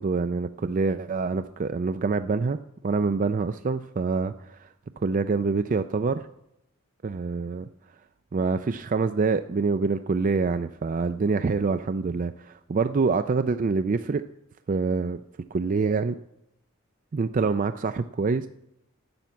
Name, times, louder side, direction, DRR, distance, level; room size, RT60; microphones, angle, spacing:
voice 1, 0.0-2.6 2.8-4.7 5.0-6.3 7.0-7.7 8.3-14.3 14.7-15.2 15.5-16.2 17.1-18.5, right 4 dB, 35° right, 10 dB, 0.4 m, -26 dB
12.0 x 7.1 x 9.2 m, 0.82 s
head